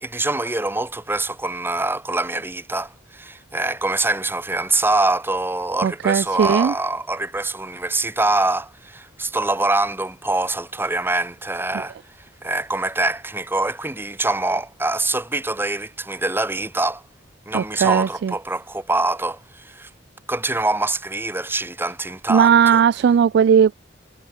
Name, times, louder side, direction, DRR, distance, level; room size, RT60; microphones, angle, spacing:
voice 1, 0.0-17.0 17.4-19.9 20.3-22.8, right 2 dB, 10° right, 1.7 m, -24 dB
voice 2, 5.8-6.7 17.5-18.3 22.3-23.7, right 7 dB, 60° right, 0.3 m, -17 dB
head